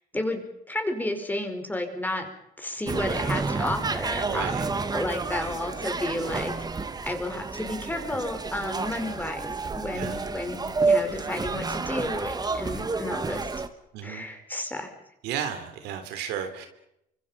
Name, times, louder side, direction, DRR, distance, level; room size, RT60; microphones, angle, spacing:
voice 1, 0.7-2.3 2.6-6.5 7.0-13.5 14.0-14.9, left 1 dB, 10° left, 5 dB, 5.2 m, -32 dB
sound 1, 2.9-13.7, right 4 dB, 25° right, 1.8 m, -30 dB
voice 2, 4.2-4.7 9.9-10.2 13.9-14.3 15.2-16.7, right 9 dB, 90° right, 7 dB, 3.6 m, -33 dB
29.0 x 25.0 x 5.8 m, 0.80 s
cardioid pair, 110°, 17 cm